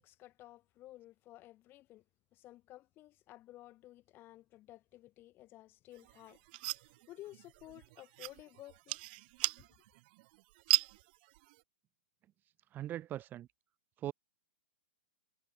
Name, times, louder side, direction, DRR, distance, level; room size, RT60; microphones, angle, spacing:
voice 1, 0.0-2.0 2.3-6.4 6.7-9.0, left 15 dB, 30° left, 6.3 m, -54 dB
sound 1, 5.9-11.6, right 22 dB, 50° right, 3.6 m, -38 dB
voice 2, 12.7-13.5 14.0-14.1, right 12 dB, 25° right, 1.5 m, -40 dB
hypercardioid pair, 125°, 7 cm